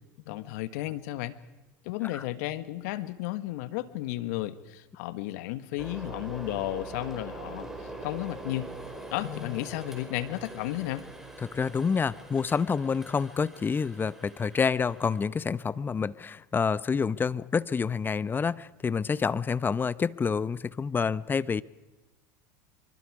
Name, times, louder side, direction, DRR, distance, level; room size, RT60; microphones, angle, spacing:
voice 1, 0.3-1.4 1.8-8.7 9.1-11.0, left 15 dB, 70° left, 13 dB, 1.4 m, -33 dB
sound 1, 5.8-15.2, right 2 dB, 5° right, 4.9 m, -43 dB
voice 2, 11.4-21.6, left 5 dB, 20° left, 18 dB, 0.7 m, -28 dB
25.5 x 24.0 x 4.9 m, 1.1 s
hypercardioid pair, 90°, 9 cm